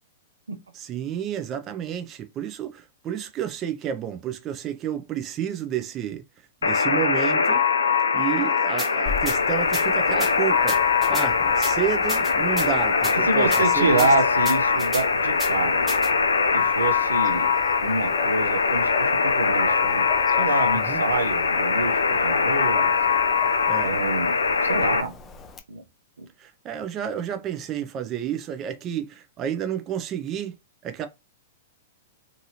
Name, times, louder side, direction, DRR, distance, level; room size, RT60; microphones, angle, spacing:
voice 1, 0.7-6.2 6.6-7.6 8.1-14.1 20.7-21.0 23.7-24.0 26.4-30.5 30.8-31.1, right 10 dB, 30° right, 0.4 m, -30 dB
Alarm, 6.6-25.0, left 5 dB, 85° left, 0.3 m, -22 dB
sound 1, 8.8-8.9 9.3-9.4 9.7-9.8 10.2-10.3 10.7-11.3 11.6-11.7 12.1-12.7 13.0-13.1 13.5-13.6 14.0-14.1 14.4-15.0 15.4-15.5 15.9-16.1, right 1 dB, 15° right, 1.1 m, -32 dB
Dog, 9.1-25.6, left 5 dB, 20° left, 0.5 m, -39 dB
voice 2, 13.2-15.9 16.5-17.5 17.8-20.1 20.3-22.9 23.8-24.4 24.6-25.1 25.7-25.8 26.2-26.3, right 3 dB, 90° right, 0.6 m, -27 dB
2.7 x 2.6 x 2.7 m
hypercardioid pair, 120°, 0 cm